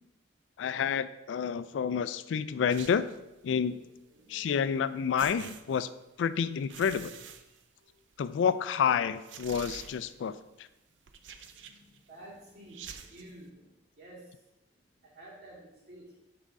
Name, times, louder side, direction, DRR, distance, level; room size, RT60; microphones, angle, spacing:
voice 1, 0.6-3.1 3.4-3.8 4.3-5.9 6.2-7.1 8.2-10.3, left 7 dB, 85° left, 14 dB, 0.3 m, -29 dB
sound 1, 2.7-3.3 4.7-4.8 5.2-6.2 6.6-8.1 8.5-8.6 9.2-10.3 11.1-12.0 12.7-13.3, right 7 dB, 80° right, 0.5 m, -47 dB
voice 2, 3.5-3.8 4.1-4.5 7.5-8.0 10.9-14.4 14.7-16.2, right 1 dB, 60° right, -5 dB, 2.3 m, -53 dB
6.1 x 3.6 x 5.3 m, 0.95 s
head